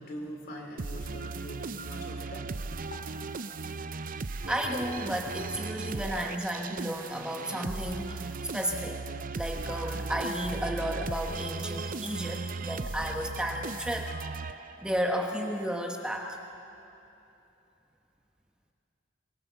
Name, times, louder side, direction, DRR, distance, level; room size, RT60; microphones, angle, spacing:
voice 1, 0.0-3.1, equal, 55° left, 1 dB, 3.5 m, -43 dB
sound 1, 0.8-15.0, right 3 dB, 45° right, 0.6 m, -37 dB
voice 2, 4.5-9.0 9.3-14.1 14.8-16.4, equal, 5° right, 1 dB, 1.1 m, -33 dB
23.0 x 21.0 x 7.1 m, 2.9 s
head